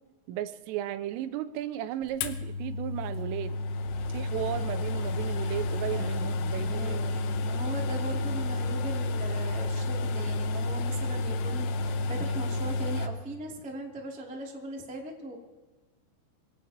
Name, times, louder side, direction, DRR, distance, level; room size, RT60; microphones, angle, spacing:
voice 1, 0.3-3.5 4.1-7.2, right 12 dB, 90° right, 11 dB, 3.3 m, -35 dB
sound 1, 2.2-13.1, left 2 dB, 90° left, 3.7 m, -30 dB
voice 2, 5.9-15.4, right 1 dB, 5° right, -2 dB, 0.7 m, -40 dB
25.0 x 18.0 x 2.9 m, 1.3 s
omnidirectional pair, 5.8 m